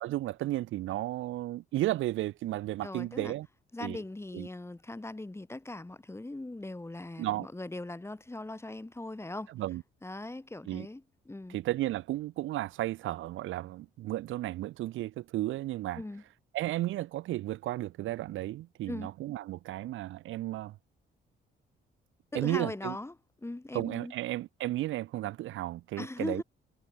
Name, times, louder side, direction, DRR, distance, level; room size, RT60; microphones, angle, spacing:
voice 1, 0.0-3.5 3.8-4.0 4.3-4.5 7.2-7.5 9.5-9.8 10.7-10.9 11.5-16.0 16.5-20.7 22.3-23.0 23.7-26.4, right 15 dB, 80° right, 0.7 m, -33 dB
voice 2, 2.8-3.3 3.7-9.5 10.0-11.6 15.9-16.2 18.9-19.1 22.3-23.1 23.4-24.1 26.0-26.4, left 2 dB, 15° left, 3.9 m, -40 dB
cardioid pair, 90°, 20 cm